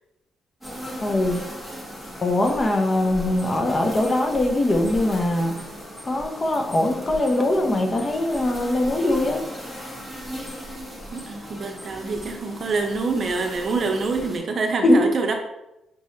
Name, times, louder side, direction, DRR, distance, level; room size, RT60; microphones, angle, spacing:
sound 1, 0.6-14.4, equal, 10° left, 1.5 m, -37 dB
voice 1, 1.0-1.4 2.2-5.6 6.0-9.4 14.8-15.1, left 1 dB, 30° left, 4 dB, 0.7 m, -21 dB
voice 2, 11.1-15.3, right 4 dB, 50° right, 4 dB, 0.7 m, -26 dB
6.0 x 3.1 x 2.8 m, 0.90 s
cardioid pair, 90°, 0 cm